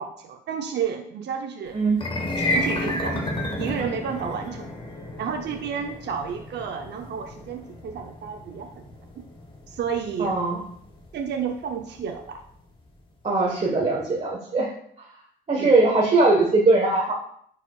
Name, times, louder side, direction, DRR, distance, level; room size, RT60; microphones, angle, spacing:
voice 1, 0.0-1.8 2.4-3.2 3.6-4.8 5.2-8.8 9.2-9.3 9.7-10.4 11.1-12.4 15.6-15.7, right 7 dB, 60° right, 3 dB, 0.7 m, -31 dB
voice 2, 1.7-2.0 10.2-10.6 13.2-14.7 15.0-15.1 15.5-17.1, right 3 dB, 35° right, -3 dB, 1.3 m, -20 dB
sound 1, 1.9-12.2, left 1 dB, 25° left, 1.2 m, -32 dB
10.0 x 4.9 x 2.4 m, 0.67 s
cardioid pair, 90°, 20 cm